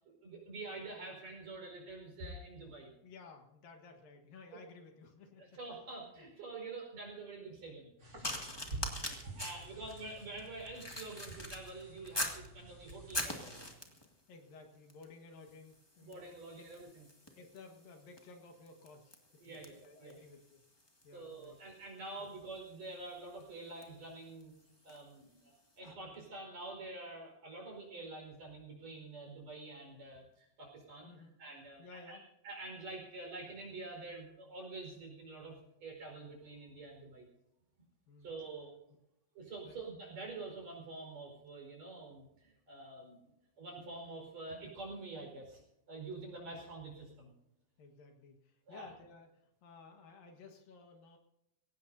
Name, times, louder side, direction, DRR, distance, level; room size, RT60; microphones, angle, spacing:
voice 1, 0.1-2.9 4.5-4.6 5.4-7.9 9.2-13.6 16.0-17.1 19.4-20.1 21.1-24.5 24.8-25.4 25.8-31.1 31.4-37.3 38.2-38.7 39.4-43.3 43.6-45.6 45.9-47.3 48.7-48.9, right 3 dB, 45° right, 1 dB, 5.9 m, -47 dB
voice 2, 3.0-5.4 6.2-6.3 8.6-10.2 14.3-16.4 17.4-20.6 21.0-21.6 22.2-22.3 31.0-31.4 31.8-32.2 38.1-38.3 39.6-39.7 47.8-51.2, left 4 dB, 70° left, 4 dB, 3.2 m, -56 dB
sound 1, 8.0-13.7, right 3 dB, 30° right, 4.5 m, -49 dB
sound 2, 8.2-12.5 12.9-14.1 14.9-15.1 15.4-25.1 25.8-26.0, left 1 dB, 30° left, 0.4 m, -44 dB
22.5 x 18.0 x 2.7 m, 0.87 s
omnidirectional pair, 4.4 m